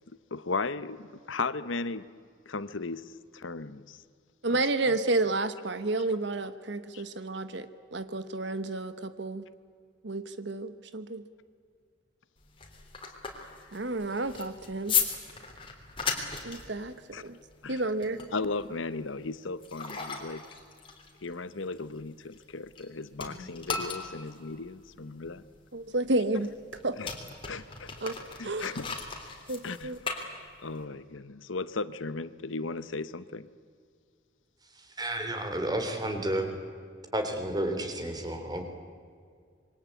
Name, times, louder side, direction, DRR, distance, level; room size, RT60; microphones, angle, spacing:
voice 1, 0.3-2.1 2.5-4.0 4.5-4.6 6.9-7.0 17.1-17.2 17.6-17.8 18.3-20.4 21.2-25.4 26.9-27.1 27.5-27.9 28.4-29.0 29.6-29.9 30.6-33.5, left 3 dB, 75° left, 1.0 m, -36 dB
voice 2, 4.4-9.5 10.0-11.2 13.7-15.0 16.4-17.4 17.7-18.2 25.7-26.5 26.8-27.0 28.0-28.2 28.4-28.8 29.5-30.0, right 2 dB, 60° right, 1.1 m, -31 dB
sound 1, 12.4-22.9 23.1-30.8, left 6 dB, 25° left, 3.5 m, -37 dB
voice 3, 34.7-36.6 37.1-38.7, right 1 dB, 20° right, 3.4 m, -31 dB
27.0 x 23.0 x 8.5 m
head